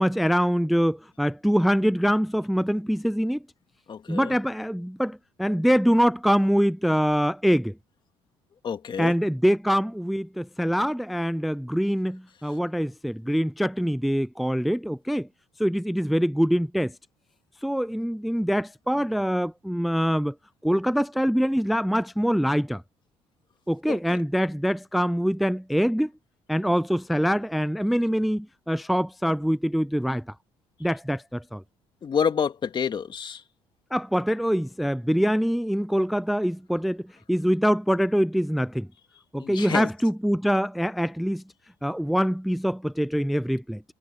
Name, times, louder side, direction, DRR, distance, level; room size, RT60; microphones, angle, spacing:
voice 1, 0.0-3.4 4.1-7.7 9.0-15.3 15.6-16.9 17.6-20.3 20.6-22.8 23.7-26.1 26.5-30.2 30.8-31.6 33.9-38.9 39.3-41.4 41.8-43.8, equal, ahead, 0.3 m, -24 dB
voice 2, 3.9-4.4 8.6-9.1 23.9-24.2 32.0-33.4 39.4-39.9, left 7 dB, 40° left, 2.2 m, -28 dB
cardioid pair, 100°, 12 cm